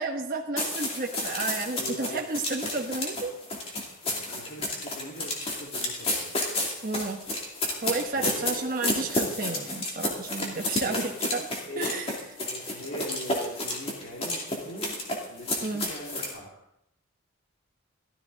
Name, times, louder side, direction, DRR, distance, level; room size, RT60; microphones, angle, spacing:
voice 1, 0.0-3.3 6.8-7.2 7.8-11.5 11.8-12.1 15.6-15.9, right 3 dB, 40° right, 1 dB, 1.2 m, -32 dB
sound 1, 0.6-16.3, left 1 dB, 25° left, 2.6 m, -31 dB
voice 2, 1.8-2.2 4.1-6.1 8.1-8.6 10.3-10.5 10.8-11.1 11.7-11.9 12.5-16.5, equal, 55° left, -3 dB, 2.5 m, -41 dB
14.5 x 13.5 x 4.0 m, 0.77 s
head